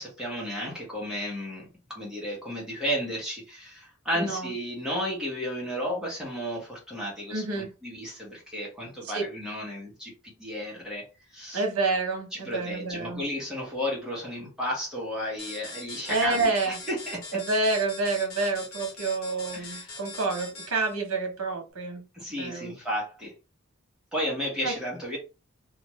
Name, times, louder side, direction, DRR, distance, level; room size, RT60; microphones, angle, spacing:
voice 1, 0.0-11.6 12.4-17.2 19.5-20.0 22.1-23.3 24.1-25.2, equal, 5° right, -5 dB, 1.1 m, -33 dB
voice 2, 4.1-4.5 7.3-7.7 9.0-9.2 11.5-13.2 16.1-16.8 17.3-22.1 22.4-22.7 24.6-24.8, right 3 dB, 85° right, 3 dB, 1.0 m, -28 dB
sound 1, 15.4-20.9, left 3 dB, 75° left, 1.0 m, -42 dB
2.5 x 2.4 x 3.1 m, 0.29 s
head